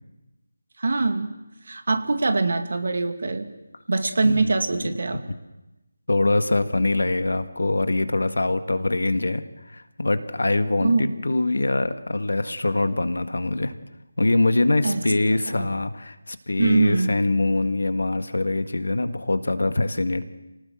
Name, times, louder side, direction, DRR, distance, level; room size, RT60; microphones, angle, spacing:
voice 1, 0.8-1.3 1.7-3.5 3.9-5.2 10.8-11.2 14.8-15.0 15.5-15.7 16.6-17.1, right 3 dB, 55° right, 8 dB, 2.5 m, -23 dB
voice 2, 6.1-9.5 9.7-13.8 14.2-20.2, left 2 dB, 70° left, 10 dB, 1.7 m, -23 dB
27.0 x 18.5 x 7.8 m, 0.99 s
figure-of-eight pair, 165°, 0 cm